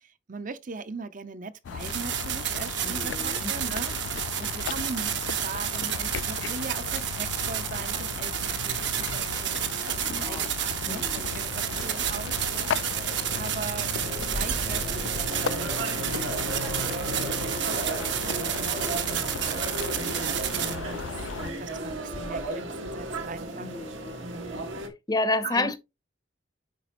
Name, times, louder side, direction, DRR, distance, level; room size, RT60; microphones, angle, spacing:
voice 1, 0.0-18.6 18.8-21.1 21.5-23.7 24.2-24.6 25.4-25.8, right 4 dB, 40° right, 0.6 m, -40 dB
sound 1, 1.6-21.5, left 7 dB, 70° left, 0.3 m, -36 dB
sound 2, 1.8-20.8, right 10 dB, 65° right, 1.0 m, -31 dB
voice 2, 2.8-3.5 10.0-10.5 10.8-11.3 23.6-24.1 25.1-25.7, left 2 dB, 20° left, 0.7 m, -30 dB
sound 3, 6.9-24.9, right 2 dB, 85° right, 1.7 m, -36 dB
8.3 x 5.0 x 2.9 m
head